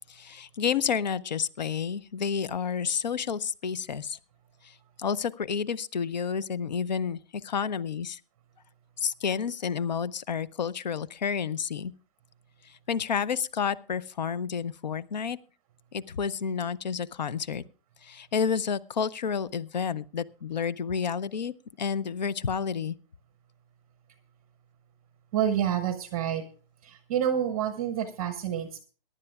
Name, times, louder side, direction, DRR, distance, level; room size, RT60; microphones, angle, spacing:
voice 1, 0.1-4.2 4.6-8.2 9.0-11.9 12.7-15.4 15.9-17.6 18.0-21.5 21.8-23.0, left 6 dB, 50° left, 19 dB, 0.6 m, -30 dB
voice 2, 25.3-26.4 26.8-28.8, right 9 dB, 20° right, 11 dB, 0.8 m, -28 dB
22.5 x 11.0 x 2.3 m, 0.37 s
figure-of-eight pair, 145°, 29 cm